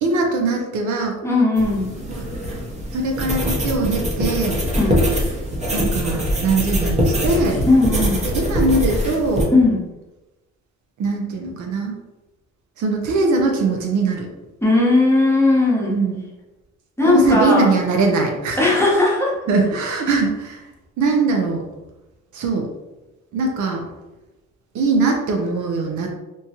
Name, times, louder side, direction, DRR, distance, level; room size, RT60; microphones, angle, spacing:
voice 1, 0.0-1.2 2.1-2.2 2.9-4.6 5.7-7.6 8.3-9.5 11.0-11.9 12.8-14.3 15.9-16.2 17.0-18.6 19.5-20.6 21.0-21.6 22.3-22.7 23.3-23.8 24.7-26.1, right 3 dB, 70° right, 1 dB, 0.6 m, -21 dB
voice 2, 1.2-1.9 4.8-5.0 7.6-8.3 9.5-9.8 14.6-15.9 17.0-17.7 18.6-19.4, left 2 dB, 10° left, -4 dB, 0.8 m, -17 dB
sound 1, 1.6-9.4, equal, 25° right, 0.7 m, -23 dB
3.0 x 2.2 x 2.8 m, 1.0 s
cardioid pair, 90°, 30 cm